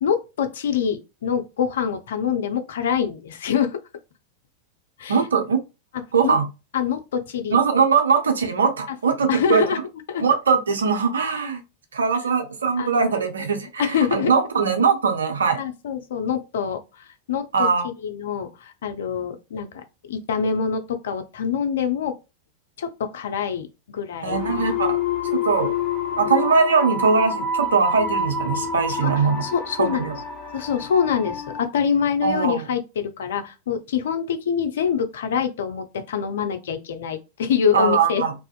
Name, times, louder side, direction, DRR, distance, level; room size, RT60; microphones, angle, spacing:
voice 1, 0.0-3.8 5.0-5.2 6.2-6.4 6.7-7.6 9.3-9.8 10.1-10.2 12.8-12.9 13.8-14.3 15.6-22.2 22.8-24.4 29.0-29.1 29.4-30.1 30.5-38.2, left 7 dB, 60° left, 0.4 m, -25 dB
voice 2, 5.1-5.6 6.1-6.4 7.5-9.6 10.2-11.6 11.9-15.6 17.5-17.8 24.2-25.0 25.2-25.7 26.2-29.4 29.8-30.1 32.2-32.7 37.7-38.3, right 5 dB, 70° right, 0.5 m, -21 dB
sound 1, 24.3-31.6, left 3 dB, 20° left, 0.8 m, -27 dB
2.4 x 2.4 x 2.3 m
figure-of-eight pair, 90°, 0 cm